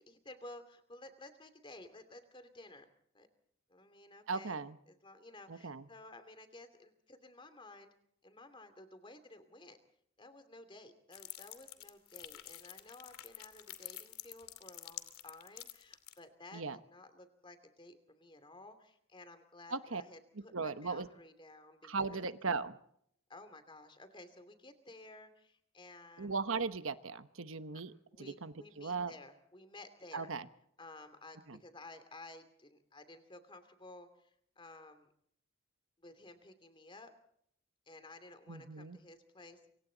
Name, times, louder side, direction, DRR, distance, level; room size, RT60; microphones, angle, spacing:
voice 1, 0.0-2.9 3.1-3.3 3.7-4.6 4.9-7.9 8.2-9.8 10.2-22.3 23.3-26.3 28.1-30.3 30.8-35.1 36.0-37.1 37.9-39.7, left 2 dB, 25° left, 10 dB, 2.7 m, -54 dB
voice 2, 4.3-4.8 5.5-5.9 16.5-16.8 19.7-20.0 20.5-21.1 21.8-22.8 26.2-27.9 28.2-29.1 30.1-30.4 31.5-31.6 38.5-39.0, right 4 dB, 70° right, 11 dB, 1.1 m, -38 dB
sound 1, 11.1-16.2, left 13 dB, 85° left, 2.6 m, -48 dB
27.5 x 24.5 x 4.0 m, 0.67 s
head